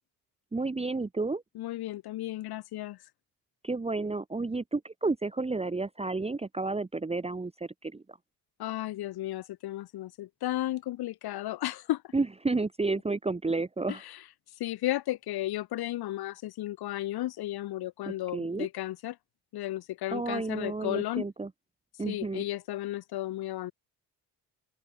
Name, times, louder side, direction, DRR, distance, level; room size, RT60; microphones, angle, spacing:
voice 1, 0.5-1.4 3.6-8.0 12.1-14.0 18.1-18.7 20.1-21.5 22.0-22.4, right 3 dB, 15° right, 1.2 m, -31 dB
voice 2, 1.6-3.0 8.6-12.0 14.6-19.1 19.5-21.2 22.1-23.7, left 15 dB, 70° left, 1.0 m, -34 dB
open air
cardioid pair, 85°, 39 cm